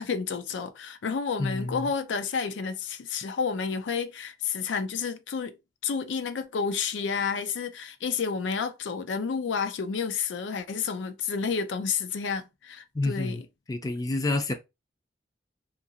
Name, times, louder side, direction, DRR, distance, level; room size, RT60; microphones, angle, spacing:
voice 1, 0.0-5.6 5.8-13.5, left 5 dB, 85° left, 0.4 m, -30 dB
voice 2, 1.4-1.9 12.9-13.4 13.7-14.5, left 2 dB, 20° left, 0.4 m, -28 dB
2.8 x 2.5 x 2.6 m
head